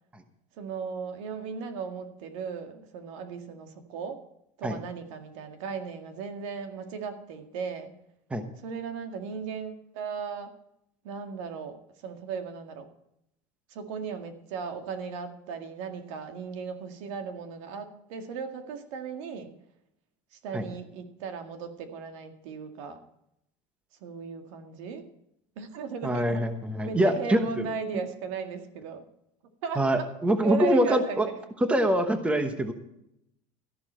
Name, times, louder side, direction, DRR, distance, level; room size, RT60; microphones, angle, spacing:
voice 1, 0.6-4.2 4.6-7.9 8.6-10.5 11.0-11.8 12.0-12.9 13.7-19.5 20.3-23.0 24.0-25.0 25.6-26.5 26.9-29.0 29.6-30.0 30.4-31.4, right 6 dB, 85° right, 6 dB, 2.0 m, -36 dB
voice 2, 26.0-27.7 29.8-31.3 31.7-32.7, right 1 dB, 10° right, 8 dB, 1.1 m, -24 dB
13.5 x 11.5 x 4.4 m, 0.78 s
cardioid pair, 165°, 16 cm